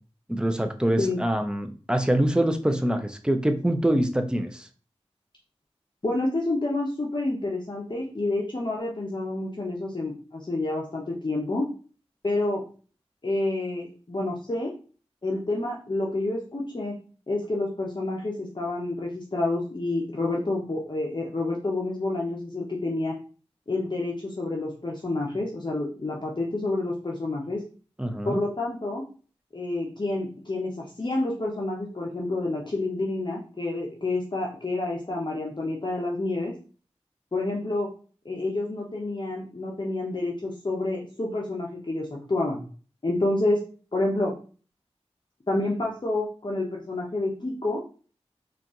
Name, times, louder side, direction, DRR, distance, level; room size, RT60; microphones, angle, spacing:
voice 1, 0.3-4.7 28.0-28.4, right 1 dB, 10° right, 7 dB, 0.6 m, -25 dB
voice 2, 6.0-11.7 12.2-12.6 13.2-14.7 15.2-16.9 17.3-23.1 23.7-27.6 28.2-29.0 29.5-36.5 37.3-37.9 38.2-42.6 43.0-43.6 43.9-44.3 45.5-47.9, left 2 dB, 45° left, -2 dB, 0.9 m, -28 dB
4.4 x 2.5 x 3.8 m, 0.39 s
wide cardioid pair, 50°, 11 cm